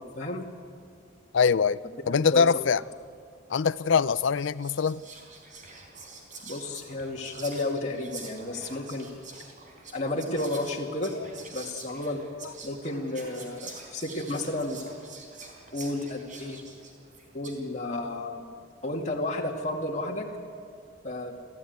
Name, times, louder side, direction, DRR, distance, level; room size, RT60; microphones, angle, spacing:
voice 1, 1.3-1.8 2.1-2.8 3.5-5.0, left 6 dB, 65° left, 0.5 m, -23 dB
voice 2, 2.1-2.5 6.4-9.1 9.9-11.2 11.5-12.2 12.6-14.8 15.7-16.6 17.3-18.5 18.8-20.3 21.0-21.3, left 2 dB, 35° left, 2.3 m, -32 dB
Whispering, 3.8-4.0 4.4-17.7, right 3 dB, 45° right, 4.4 m, -46 dB
28.5 x 13.5 x 9.5 m
head